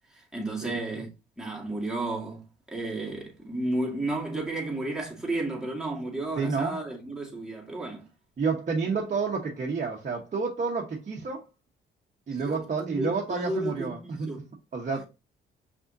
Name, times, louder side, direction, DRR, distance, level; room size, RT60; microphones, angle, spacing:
voice 1, 0.1-1.1 1.4-8.0 12.3-14.5, right 2 dB, ahead, 2.1 m, -33 dB
voice 2, 6.4-6.8 8.4-11.4 12.3-14.3 14.7-15.1, right 4 dB, 40° right, 1.1 m, -29 dB
5.5 x 3.6 x 2.6 m
cardioid pair, 90°, 20 cm